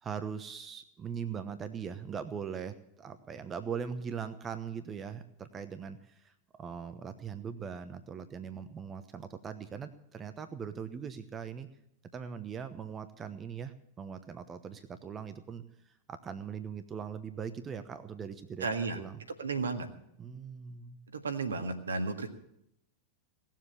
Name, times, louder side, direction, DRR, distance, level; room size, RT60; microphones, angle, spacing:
voice 1, 0.0-11.7 12.1-18.7 18.9-19.2 20.2-21.0, right 7 dB, 20° right, 10 dB, 1.0 m, -40 dB
voice 2, 18.6-19.0 19.4-19.9 21.1-22.3, right 4 dB, 70° right, 6 dB, 1.7 m, -33 dB
18.0 x 7.5 x 9.6 m, 0.77 s
figure-of-eight pair, 90°, 0 cm